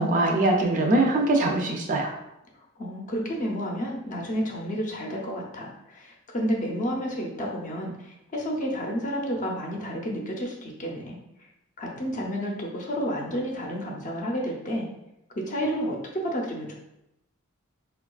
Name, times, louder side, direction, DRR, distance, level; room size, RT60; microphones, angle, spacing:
voice 1, 0.0-2.1, right 2 dB, 35° right, 2 dB, 0.4 m, -22 dB
voice 2, 2.8-11.2 11.8-14.9 15.4-16.7, equal, 35° left, -1 dB, 0.6 m, -30 dB
4.4 x 2.3 x 2.3 m, 0.85 s
head